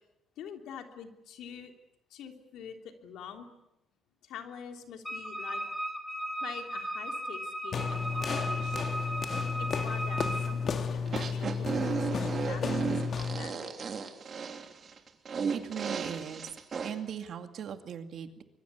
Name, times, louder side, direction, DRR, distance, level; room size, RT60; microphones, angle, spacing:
voice 1, 0.4-1.7 2.1-3.5 4.2-5.6 6.4-8.9 9.6-13.9, left 8 dB, 85° left, 4 dB, 3.2 m, -46 dB
Wind instrument woodwind instrument, 5.0-10.5, right 1 dB, 10° left, 4.4 m, -36 dB
sound 1, 7.7-13.5, left 5 dB, 50° left, 2.3 m, -32 dB
sound 2, 11.1-16.9, right 6 dB, 50° right, 3.1 m, -34 dB
voice 2, 15.5-16.5 16.8-18.4, right 8 dB, 65° right, 7 dB, 2.3 m, -39 dB
25.0 x 22.5 x 8.3 m, 0.89 s
cardioid pair, 90°, 0 cm